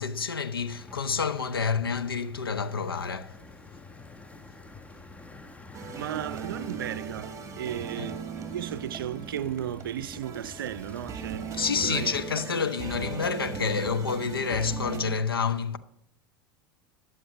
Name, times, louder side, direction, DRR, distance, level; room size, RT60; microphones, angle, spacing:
voice 1, 0.0-3.3 8.0-8.1 11.6-15.8, left 5 dB, 85° left, 0.8 m, -28 dB
sound 1, 0.6-12.1, left 3 dB, 10° left, 0.9 m, -47 dB
sound 2, 5.7-15.2, right 7 dB, 25° right, 1.3 m, -38 dB
voice 2, 6.0-12.2 12.5-12.6, right 11 dB, 70° right, 0.5 m, -35 dB
20.5 x 7.3 x 2.9 m
figure-of-eight pair, 80°, 12 cm